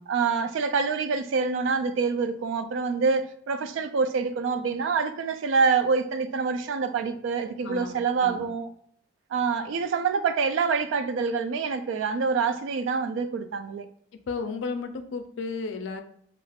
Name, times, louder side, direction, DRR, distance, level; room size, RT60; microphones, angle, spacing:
voice 1, 0.1-8.7 9.3-13.9, right 5 dB, 85° right, 0.3 m, -26 dB
voice 2, 7.6-8.5 14.3-16.0, left 4 dB, 85° left, 0.4 m, -33 dB
2.4 x 2.3 x 3.3 m
head